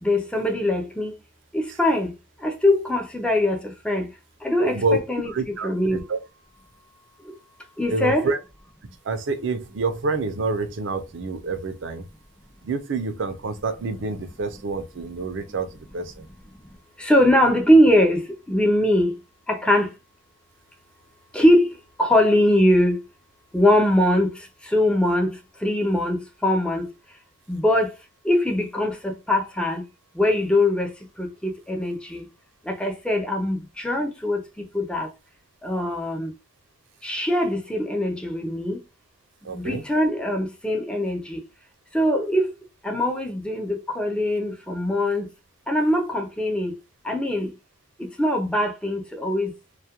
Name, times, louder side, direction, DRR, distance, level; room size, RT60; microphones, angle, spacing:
voice 1, 0.0-1.1 1.5-2.1 2.4-4.1 4.4-6.0 7.8-8.3 17.0-18.2 18.5-19.1 19.5-19.9 21.3-21.6 22.0-23.0 23.5-24.3 24.7-25.3 25.6-26.2 26.4-26.9 27.5-27.9 28.3-29.8 30.2-30.9 31.2-32.2 32.7-35.1 35.6-36.3 37.0-38.8 39.5-41.4 41.9-42.5 42.8-45.3 45.7-46.7 47.1-47.5 48.0-49.5, left 1 dB, 5° left, 0.4 m, -21 dB
voice 2, 4.6-5.0 5.3-6.2 7.9-8.4 9.0-12.1 12.6-16.3 39.4-39.8, right 3 dB, 65° right, 0.4 m, -27 dB
2.3 x 2.1 x 2.8 m
head